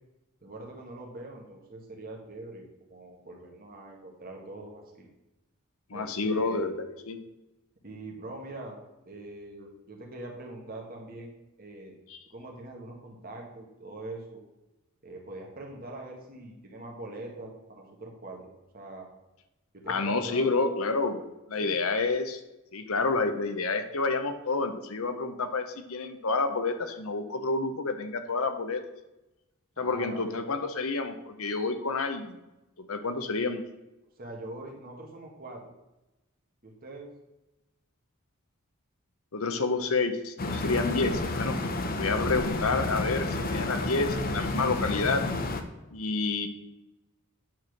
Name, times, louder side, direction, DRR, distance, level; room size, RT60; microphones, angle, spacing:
voice 1, 0.4-5.1 5.9-6.7 7.8-8.8 9.1-11.9 12.3-14.4 15.0-18.5 18.7-19.1 19.7-20.5 21.6-21.8 29.8-30.7 34.2-35.6 36.6-37.1, right 2 dB, 40° right, 0 dB, 1.9 m, -43 dB
voice 2, 5.9-7.2 19.9-21.2 21.5-22.4 22.7-28.8 29.8-32.4 32.8-33.6 39.3-41.6 42.0-45.2 45.9-46.5, left 3 dB, 70° left, 9 dB, 0.8 m, -29 dB
sound 1, 40.4-45.6, left 2 dB, 40° left, 0.8 m, -30 dB
9.2 x 4.4 x 6.5 m, 0.98 s
head